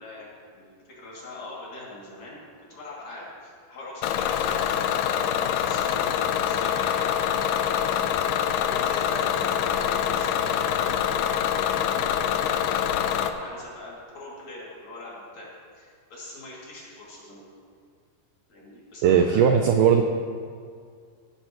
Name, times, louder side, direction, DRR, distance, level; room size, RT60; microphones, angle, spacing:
voice 1, 0.0-4.9 5.3-7.2 7.6-17.4 18.5-19.5, left 2 dB, 50° left, -6 dB, 3.6 m, -42 dB
Bus / Engine, 4.0-13.3, left 9 dB, 80° left, 2.0 m, -25 dB
voice 2, 19.0-20.0, right 8 dB, 85° right, 5 dB, 1.8 m, -18 dB
16.0 x 13.0 x 3.0 m, 2.1 s
omnidirectional pair, 4.4 m